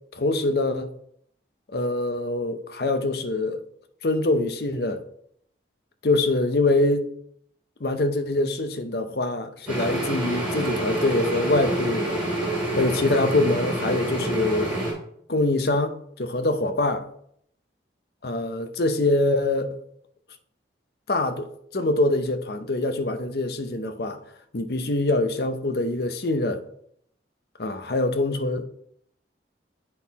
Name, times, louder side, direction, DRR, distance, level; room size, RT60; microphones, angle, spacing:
voice 1, 0.1-0.9 1.7-3.6 4.0-5.0 6.0-7.1 7.8-12.1 12.7-14.8 15.3-17.0 18.2-19.8 21.1-24.2 24.5-26.6 27.6-28.7, left 2 dB, 55° left, 0.7 m, -24 dB
sound 1, 9.7-14.9, right 1 dB, 5° right, 2.4 m, -27 dB
7.8 x 4.2 x 4.1 m
head